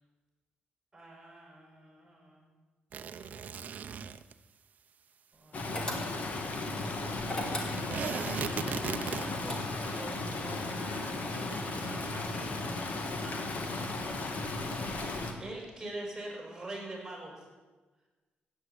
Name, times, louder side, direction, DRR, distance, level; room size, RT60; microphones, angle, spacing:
voice 1, 0.9-2.5 7.2-14.0 15.4-17.5, right 2 dB, 10° right, -1 dB, 6.1 m, -46 dB
sound 1, 2.9-4.3 7.5-9.5 10.2-10.3 10.4-10.5 11.5-11.9, right 7 dB, 50° right, 0.7 m, -37 dB
Stream, 5.5-15.3, left 2 dB, 45° left, 2.2 m, -35 dB
sound 2, 5.7-6.4 7.2-8.1 9.0-10.0, left 1 dB, 20° left, 2.5 m, -38 dB
15.5 x 9.6 x 8.6 m, 1.3 s
cardioid pair, 140°, 3 cm